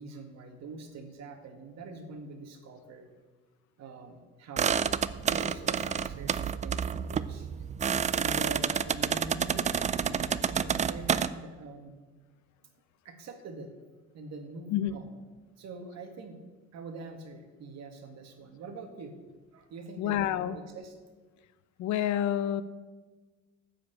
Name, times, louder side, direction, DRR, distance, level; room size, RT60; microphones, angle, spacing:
voice 1, 0.0-3.1 3.8-7.5 8.1-11.9 13.1-13.7 14.1-15.1 15.6-16.4 16.7-19.2 19.5-20.9, right 3 dB, 60° right, 6 dB, 1.9 m, -44 dB
sound 1, 4.6-11.3, right 7 dB, 25° right, 0.4 m, -29 dB
voice 2, 20.0-20.6 21.8-22.6, left 11 dB, 70° left, 14 dB, 0.8 m, -28 dB
13.5 x 5.0 x 8.7 m, 1.4 s
cardioid pair, 115°, 30 cm